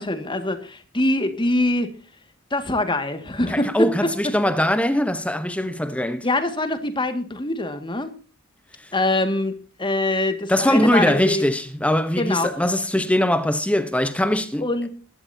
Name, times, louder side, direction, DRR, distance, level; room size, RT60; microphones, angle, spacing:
voice 1, 0.0-1.9 2.5-4.1 6.2-8.1 8.9-11.5 12.2-12.5 14.6-14.9, left 2 dB, 25° left, 2.0 m, -24 dB
voice 2, 3.5-6.3 10.5-14.6, left 1 dB, 5° left, 1.0 m, -21 dB
22.0 x 12.5 x 2.8 m
head